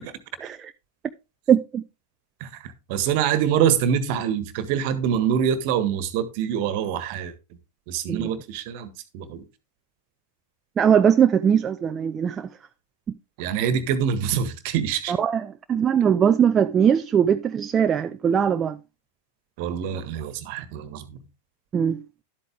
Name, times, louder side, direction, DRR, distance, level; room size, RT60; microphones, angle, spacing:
voice 1, 0.4-0.7 1.5-1.8 8.1-8.3 10.8-12.5 15.1-18.8 21.7-22.0, right 8 dB, 25° right, 0.5 m, -20 dB
voice 2, 2.4-7.3 7.9-9.4 13.4-15.1 19.6-21.2, right 8 dB, 45° right, 1.6 m, -25 dB
12.0 x 8.3 x 3.5 m
figure-of-eight pair, 90°, 0 cm